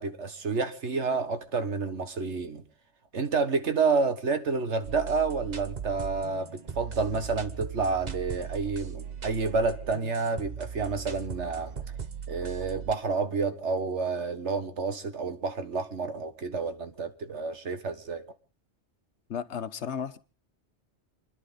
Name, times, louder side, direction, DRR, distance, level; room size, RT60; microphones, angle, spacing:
voice 1, 0.0-2.6 3.1-6.5 6.8-11.7 12.3-18.2, right 4 dB, 85° right, 1.9 m, -29 dB
sound 1, 4.8-13.0, right 7 dB, 40° right, 1.1 m, -39 dB
voice 2, 19.3-20.2, left 7 dB, 90° left, 1.3 m, -34 dB
29.5 x 11.0 x 4.1 m
omnidirectional pair, 1.1 m